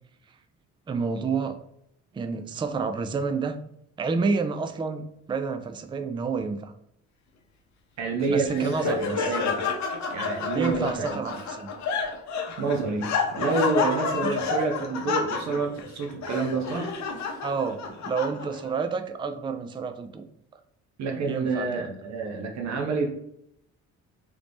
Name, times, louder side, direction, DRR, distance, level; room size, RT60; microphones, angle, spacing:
voice 1, 0.9-1.6 2.1-3.6 4.0-6.7 8.3-9.3 10.5-11.7 14.2-14.4 17.4-20.2 21.2-21.9, right 4 dB, 15° right, 8 dB, 0.3 m, -29 dB
voice 2, 8.0-9.7 10.1-11.2 12.6-16.9 21.0-23.1, right 4 dB, 65° right, 2 dB, 0.7 m, -28 dB
Laughter, 8.2-18.7, left 4 dB, 65° left, 0.7 m, -30 dB
3.2 x 2.5 x 3.4 m, 0.74 s
cardioid pair, 90°, 30 cm